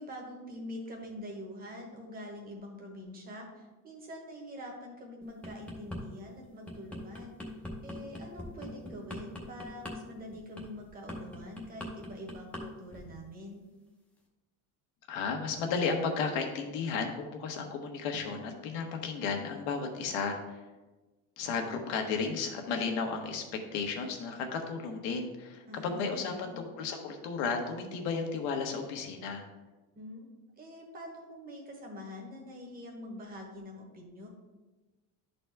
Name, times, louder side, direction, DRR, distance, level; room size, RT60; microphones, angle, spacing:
voice 1, 0.0-7.4 7.8-13.6 25.7-26.7 29.9-30.3 30.6-34.3, left 1 dB, 20° right, 1 dB, 1.2 m, -45 dB
sound 1, 5.2-6.0 6.4-12.6 12.9-13.2, left 1 dB, 5° left, 0.7 m, -41 dB
voice 2, 15.1-20.6 21.4-23.4 23.7-29.5, left 5 dB, 80° left, 4 dB, 1.3 m, -33 dB
11.5 x 4.2 x 3.4 m, 1.2 s
cardioid pair, 175°, 39 cm